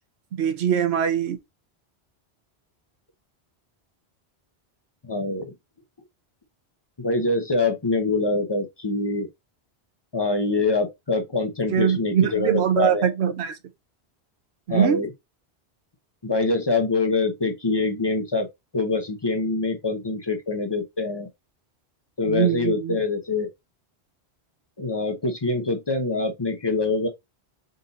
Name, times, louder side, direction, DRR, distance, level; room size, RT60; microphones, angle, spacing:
voice 1, 0.4-1.4 11.7-13.6 14.7-15.0 22.2-23.0, right 9 dB, 85° right, 1.0 m, -22 dB
voice 2, 5.0-5.5 7.0-9.3 10.1-13.1 14.7-15.1 16.2-18.5 18.7-21.3 22.2-23.5 24.8-27.1, left 3 dB, 30° left, 0.7 m, -24 dB
3.9 x 2.7 x 3.9 m
omnidirectional pair, 1.1 m